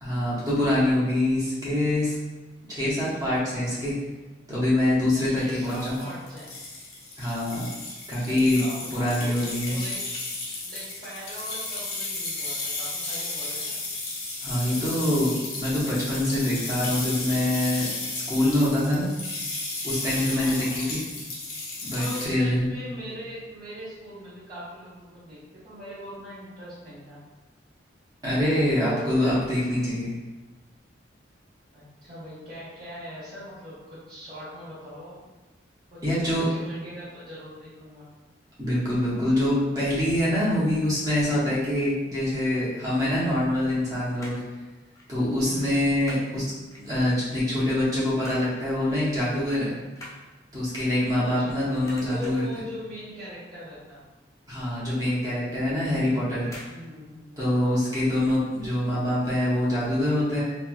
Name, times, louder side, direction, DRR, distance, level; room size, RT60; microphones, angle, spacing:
voice 1, 0.0-2.2 2.7-3.9 4.5-6.0 7.2-7.7 8.1-8.6 8.9-9.8 14.4-17.9 18.1-19.1 19.8-21.0 21.8-22.7 28.2-30.1 36.0-36.5 38.6-44.4 45.1-46.4 46.7-49.7 50.5-52.5 54.5-56.5 57.4-60.4, left 1 dB, 20° right, -9 dB, 0.7 m, -25 dB
voice 2, 5.2-6.5 8.2-10.1 10.7-13.8 20.3-20.9 22.0-27.2 28.8-29.4 31.7-35.2 35.9-38.1 45.4-46.1 51.2-51.5 52.0-54.0 56.7-57.4, equal, 45° right, -13 dB, 0.8 m, -41 dB
sound 1, 5.5-22.3, left 2 dB, 55° left, 0.6 m, -34 dB
sound 2, 44.1-44.6 44.9-45.1 45.4-46.3 46.7-47.3 47.7-48.5 48.9-49.1 49.4-51.5 51.8-52.6 53.0-53.3 53.6-53.7 54.1-54.2 54.6-54.7 55.5-55.8 56.4-56.8 57.1-57.2, left 1 dB, 15° left, 0.4 m, -45 dB
2.8 x 2.2 x 2.3 m, 1.2 s
head